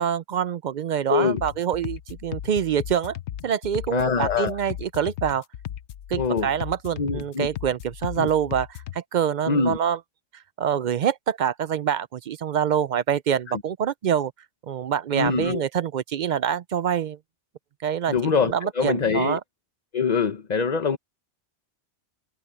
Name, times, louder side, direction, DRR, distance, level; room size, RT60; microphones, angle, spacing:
voice 1, 0.0-3.2 3.4-5.4 6.1-10.0 10.6-14.3 14.7-17.2 17.8-18.1 18.4-19.4, right 8 dB, 60° right, 0.5 m, -25 dB
voice 2, 1.1-1.4 3.9-4.5 6.2-6.5 7.0-7.5 8.2-8.3 9.5-9.8 13.5-13.6 15.1-15.6 18.1-19.4 19.9-21.0, left 5 dB, 40° left, 1.0 m, -24 dB
sound 1, 1.4-9.0, left 11 dB, 75° left, 0.9 m, -36 dB
omnidirectional pair, 1.2 m